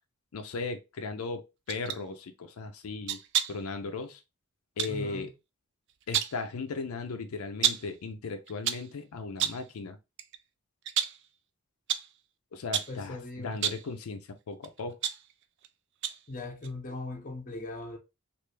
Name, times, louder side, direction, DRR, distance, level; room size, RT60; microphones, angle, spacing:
voice 1, 0.3-3.2 3.5-4.2 4.8-5.3 6.1-10.0 12.5-15.0, left 4 dB, 80° left, 0.5 m, -37 dB
sound 1, 1.7-2.0 3.1-3.7 4.8-5.0 5.9-6.5 7.6-8.0 8.5-8.9 9.4-9.7 10.2-10.4 10.9-11.3 11.9-12.1 12.7-13.0 13.5-13.9 14.6-15.7 16.0-16.3 16.6-16.7, right 10 dB, 55° right, 0.3 m, -31 dB
voice 2, 4.9-5.3 12.9-13.6 16.3-18.0, left 2 dB, 35° left, 0.6 m, -39 dB
3.2 x 2.5 x 3.2 m
head